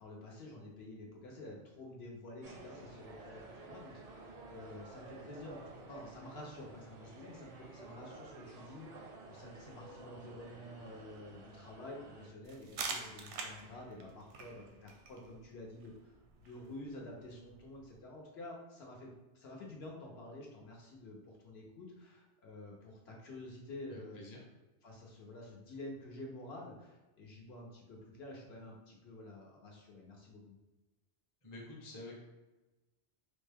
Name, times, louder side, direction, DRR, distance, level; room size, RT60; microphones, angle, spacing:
voice 1, 0.0-16.1 16.4-24.2 24.8-30.5, left 1 dB, 70° left, -2 dB, 1.0 m, -49 dB
sound 1, 2.4-12.3, right 3 dB, 50° right, 0.5 m, -52 dB
sound 2, 12.5-18.0, right 4 dB, 85° right, 0.9 m, -47 dB
voice 2, 23.9-24.4 31.4-32.2, left 2 dB, 20° left, -2 dB, 0.6 m, -48 dB
3.5 x 2.2 x 3.3 m, 1.1 s
omnidirectional pair, 1.2 m